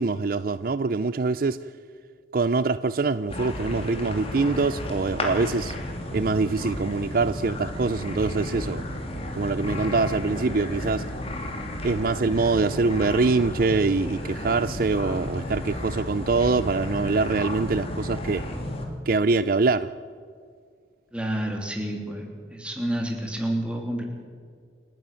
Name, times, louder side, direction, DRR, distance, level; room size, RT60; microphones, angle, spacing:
voice 1, 0.0-1.6 2.3-5.8 6.1-8.8 9.3-11.1 11.8-18.4 19.1-19.9, right 3 dB, 50° right, 14 dB, 0.4 m, -24 dB
sound 1, 3.3-18.8, left 1 dB, 30° left, 3.0 m, -33 dB
voice 2, 21.1-24.0, right 1 dB, 5° right, 2 dB, 3.0 m, -29 dB
29.0 x 10.5 x 9.0 m, 2.1 s
head